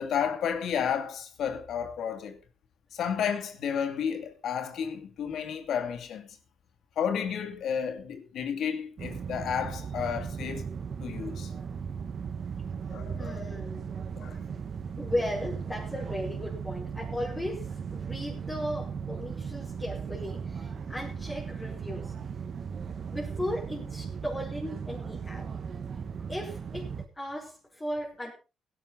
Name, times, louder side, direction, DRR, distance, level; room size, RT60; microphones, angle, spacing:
voice 1, 0.0-2.4 2.9-6.3 7.0-10.7 11.0-11.5 12.9-13.5 14.1-14.4, left 7 dB, 70° left, 2.4 m, -32 dB
sound 1, 9.0-27.0, right 6 dB, 50° right, 1.5 m, -37 dB
voice 2, 13.1-13.9 15.0-22.1 23.1-25.5 26.2-28.3, left 1 dB, 15° left, 5.1 m, -36 dB
17.0 x 11.5 x 4.0 m
cardioid pair, 90°, 0 cm